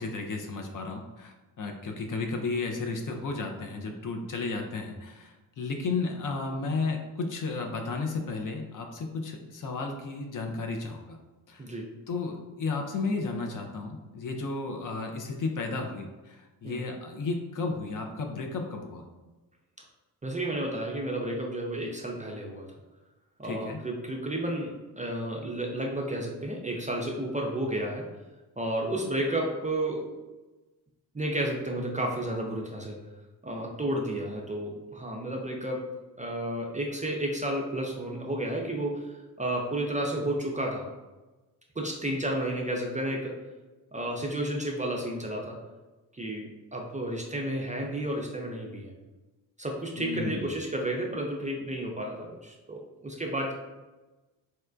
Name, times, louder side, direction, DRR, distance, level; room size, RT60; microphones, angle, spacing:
voice 1, 0.0-11.2 11.5-11.6 12.1-19.0 23.4-23.8 50.0-50.5, left 3 dB, 40° left, 3 dB, 0.5 m, -33 dB
voice 2, 11.6-11.9 16.6-16.8 20.2-22.7 23.4-28.1 28.6-30.1 31.1-33.0 33.4-35.9 36.2-40.9 41.8-43.4 43.9-45.6 46.1-48.9 49.6-53.5, right 1 dB, 15° right, -1 dB, 0.5 m, -32 dB
4.1 x 2.1 x 2.4 m, 1.1 s
hypercardioid pair, 45°, 49 cm